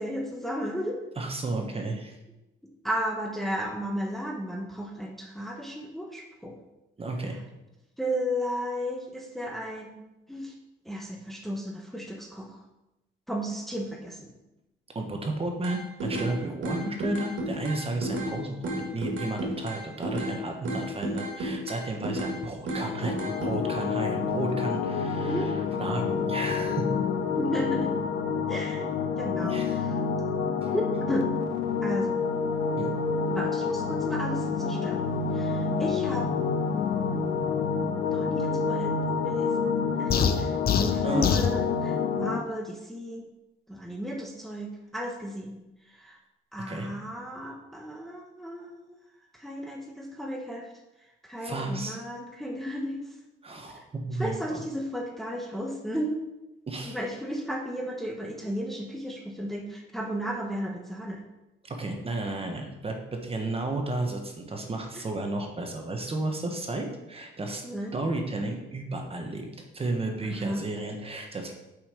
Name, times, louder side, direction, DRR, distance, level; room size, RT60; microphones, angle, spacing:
voice 1, 0.0-1.0 2.8-6.6 8.0-10.5 10.8-12.6 13.3-14.3 25.3-25.5 27.4-28.0 28.5-28.9 29.2-29.9 30.7-31.3 31.8-32.2 33.3-35.0 35.3-36.3 38.0-39.7 40.0-43.3 43.7-46.2 46.5-48.9 49.3-50.7 51.2-53.0 54.2-56.2 56.8-61.2 64.9-65.0 67.6-68.0 70.2-70.7, equal, ahead, 0 dB, 1.1 m, -34 dB
voice 2, 1.2-2.2 7.0-7.4 14.9-25.5 25.8-26.8 29.2-29.7 30.6-30.7 32.8-32.9 41.0-41.5 46.7-46.9 51.4-52.0 53.4-54.6 56.7-57.0 61.6-67.6 67.9-69.5 69.7-71.5, right 2 dB, 30° right, 3 dB, 1.3 m, -33 dB
sound 1, 15.6-16.3 16.6-18.3 18.6-20.3 20.6-22.4 22.7-23.5, right 1 dB, 70° right, 2.3 m, -32 dB
sound 2, 22.9-42.4, left 5 dB, 75° left, 0.8 m, -28 dB
sound 3, 40.1-41.6, left 7 dB, 50° left, 0.6 m, -24 dB
6.0 x 5.5 x 5.1 m, 0.95 s
cardioid pair, 90°, 20 cm